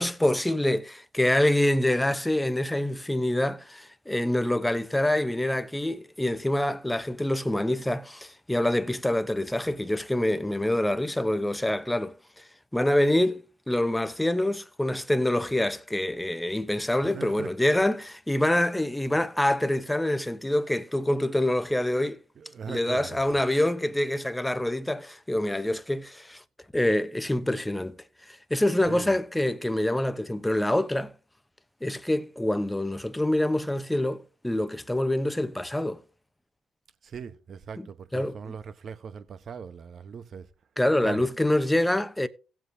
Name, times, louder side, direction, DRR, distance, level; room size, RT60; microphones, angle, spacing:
voice 1, 0.0-12.4 12.7-13.4 13.7-22.2 22.7-26.4 26.7-28.0 28.3-31.1 31.8-36.0 37.8-37.9 38.1-38.5 40.8-42.3, left 1 dB, 10° left, 0.8 m, -26 dB
voice 2, 17.1-17.5 22.4-23.3 28.9-29.2 37.0-40.5 41.0-41.3, right 6 dB, 55° right, 0.9 m, -40 dB
17.0 x 7.5 x 2.7 m
supercardioid pair, 60°, 0 cm